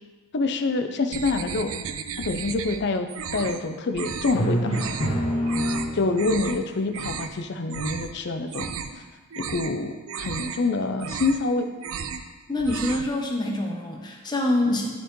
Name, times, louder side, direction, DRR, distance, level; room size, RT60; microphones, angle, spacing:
voice 1, 0.3-1.7 2.2-3.1 3.3-4.7 5.9-8.7 9.4-11.7, left 3 dB, 50° left, 7 dB, 0.5 m, -26 dB
sound 1, 1.1-2.8 3.1-3.6 3.9-4.4 4.7-5.1 5.5-5.9 6.2-6.6 6.9-7.3 7.7-8.1 8.4-9.0 9.3-9.7 10.1-10.6 10.9-11.5 11.8-12.3 12.5-13.1, right 6 dB, 65° right, 0.4 m, -34 dB
Drum, 4.3-6.4, equal, 65° left, 1.8 m, -26 dB
voice 2, 12.5-14.9, left 1 dB, 20° left, 1 dB, 0.8 m, -25 dB
12.0 x 4.4 x 3.1 m, 1.3 s
head